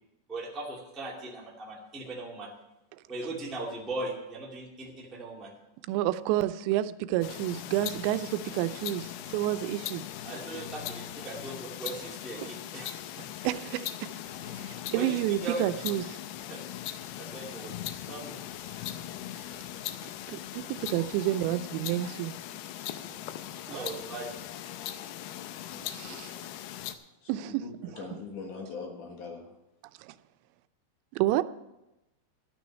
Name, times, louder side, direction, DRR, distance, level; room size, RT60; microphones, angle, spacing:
voice 1, 0.3-2.5 3.1-5.5 10.2-13.3 14.9-15.6 16.5-16.6 17.1-17.7 18.0-18.4 23.6-24.3 28.0-28.1, right 2 dB, ahead, -4 dB, 0.3 m, -39 dB
voice 2, 5.9-10.0 12.4-12.5 13.4-14.1 14.4-16.2 20.3-22.3 23.7-23.9 25.9-26.4 27.3-27.9 30.0-30.1 31.1-31.4, right 14 dB, 90° right, 13 dB, 2.8 m, -30 dB
sound 1, 7.2-27.0, left 12 dB, 80° left, 2.4 m, -40 dB
voice 3, 27.2-29.5, left 4 dB, 60° left, 2 dB, 2.4 m, -42 dB
12.5 x 6.2 x 8.4 m, 0.95 s
omnidirectional pair, 5.0 m